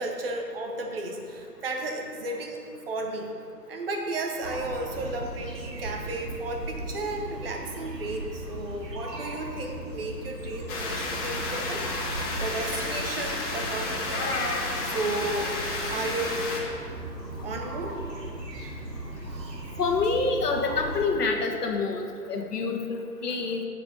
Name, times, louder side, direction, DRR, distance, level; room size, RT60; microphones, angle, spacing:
voice 1, 0.0-2.6 2.9-3.3 3.7-14.3 14.8-15.5 15.9-16.4 17.4-18.0 19.3-19.6, right 2 dB, 35° right, 2 dB, 1.1 m, -33 dB
sound 1, 4.4-21.1, right 1 dB, 75° right, 2.1 m, -38 dB
sound 2, 10.7-16.6, left 2 dB, 40° left, 2.0 m, -31 dB
voice 2, 19.8-23.6, left 4 dB, 65° left, 3 dB, 1.4 m, -27 dB
14.0 x 4.7 x 5.3 m, 2.4 s
hypercardioid pair, 155°, 49 cm